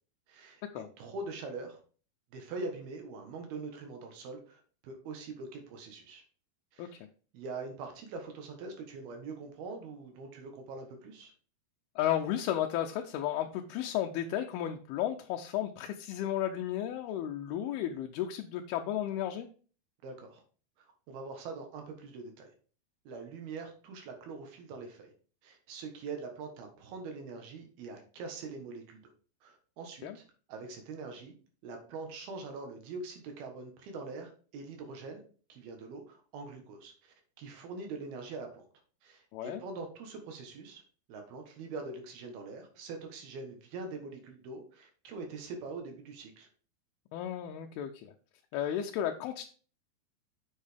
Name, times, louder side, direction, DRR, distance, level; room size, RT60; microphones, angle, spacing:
voice 1, 0.3-1.8 2.3-6.2 6.7-7.0 7.3-11.3 20.0-20.4 20.8-22.5 23.1-25.1 25.4-29.0 29.4-30.2 30.5-31.3 31.6-35.2 35.5-38.6 39.0-40.8 41.1-46.5, right 3 dB, 75° right, 4 dB, 3.2 m, -43 dB
voice 2, 12.0-19.5 30.0-30.2 39.3-39.6 47.1-48.1 48.5-49.5, left 11 dB, 80° left, 4 dB, 2.5 m, -33 dB
7.4 x 7.3 x 3.4 m, 0.40 s
omnidirectional pair, 4.6 m